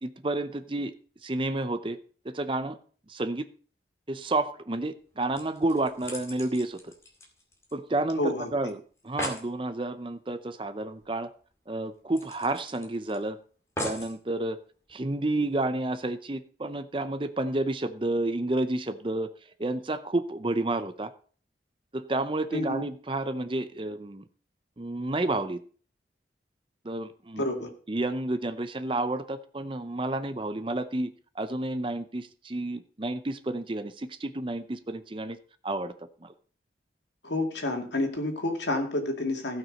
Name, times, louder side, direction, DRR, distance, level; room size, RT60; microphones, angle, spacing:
voice 1, 0.0-0.9 1.2-2.0 2.2-2.8 3.1-3.5 4.1-6.9 7.7-11.3 11.7-13.4 13.8-14.6 14.9-19.3 19.6-21.1 21.9-24.3 24.8-25.6 26.8-27.4 27.9-35.4 35.6-35.9 36.2-36.3, right 2 dB, 30° right, 12 dB, 0.6 m, -30 dB
sound 1, 5.0-5.1 5.3-8.0 8.3-8.4 8.7-8.8 9.0-9.5 11.0-11.1 11.4-11.5 12.1-13.2 13.8-14.2 14.9-15.0, equal, 15° left, 2.3 m, -38 dB
voice 2, 8.2-8.5 22.5-22.8 27.4-27.7 37.2-39.6, left 2 dB, 75° left, 3 dB, 2.3 m, -29 dB
16.0 x 6.0 x 5.3 m, 0.43 s
head